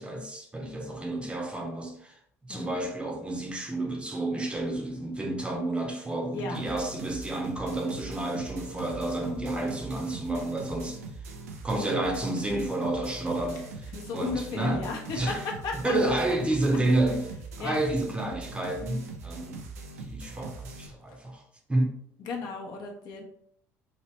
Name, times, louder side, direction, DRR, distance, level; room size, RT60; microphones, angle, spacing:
voice 1, 0.0-2.2 2.4-11.0 11.6-14.9 15.1-15.4 15.8-17.2 17.6-19.6 20.0-21.4 21.7-22.0, right 1 dB, 15° right, 0.8 m, -30 dB
sound 1, 6.5-20.9, right 3 dB, 85° right, 0.5 m, -42 dB
voice 2, 13.9-16.1 17.6-17.8 22.2-23.2, left 4 dB, 55° left, 0.8 m, -35 dB
3.1 x 2.9 x 3.1 m
hypercardioid pair, 65°, 8 cm